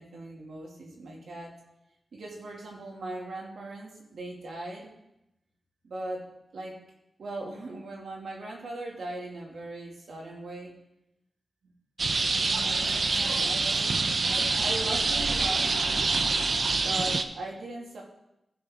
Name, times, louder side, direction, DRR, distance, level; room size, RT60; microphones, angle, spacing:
voice 1, 0.0-1.6 2.1-4.9 5.8-6.3 6.5-6.8 7.2-10.8 11.6-11.7 12.4-15.8 16.6-18.0, right 2 dB, 85° right, -1 dB, 2.3 m, -39 dB
sound 1, 12.0-17.2, right 3 dB, 55° right, 0.6 m, -26 dB
14.5 x 6.0 x 3.7 m, 0.87 s
wide cardioid pair, 85°, 0 cm